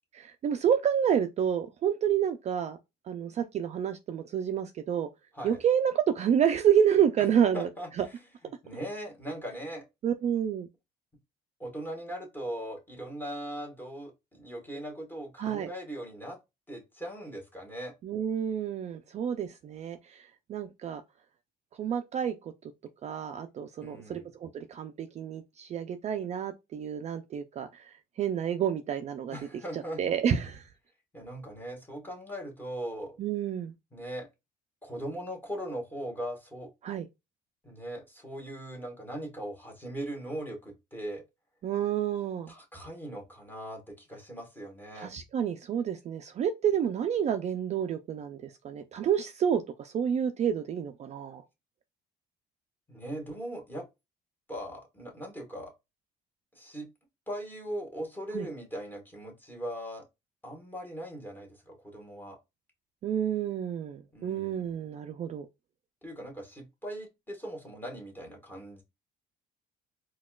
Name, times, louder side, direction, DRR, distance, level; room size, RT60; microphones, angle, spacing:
voice 1, 0.1-2.8 3.1-5.1 5.4-7.7 8.0-8.1 10.0-10.7 15.4-15.7 18.0-20.2 20.5-21.0 21.8-22.5 23.0-29.4 29.7-30.6 33.2-33.7 36.8-37.1 41.6-42.5 45.0-51.4 58.3-58.5 63.0-65.5, right 8 dB, 40° right, 0.4 m, -29 dB
voice 2, 7.5-8.2 8.6-9.8 11.6-16.4 16.7-17.9 23.8-24.3 29.3-30.0 31.1-33.1 33.9-34.3 34.8-36.7 37.6-41.2 42.5-45.1 52.9-53.9 54.5-55.7 56.5-56.9 57.3-60.0 60.4-62.4 64.1-64.6 66.0-68.8, right 1 dB, 10° left, 1.3 m, -39 dB
4.0 x 2.3 x 2.3 m
cardioid pair, 110°, 17 cm